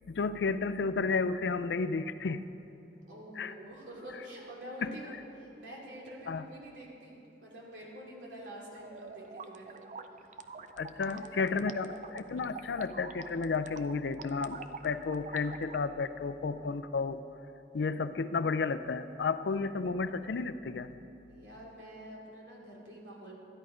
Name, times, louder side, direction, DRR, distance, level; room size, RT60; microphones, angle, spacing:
voice 1, 0.1-2.4 3.4-3.5 4.8-5.0 6.3-6.4 10.8-17.2 17.7-20.9, left 4 dB, 75° left, 13 dB, 0.4 m, -32 dB
voice 2, 3.1-9.8 10.2-10.4 10.9-11.4 21.3-23.4, right 1 dB, 85° right, -3 dB, 2.7 m, -47 dB
sound 1, 8.8-15.8, right 4 dB, 45° right, 0.4 m, -46 dB
13.5 x 10.5 x 5.0 m, 2.9 s
head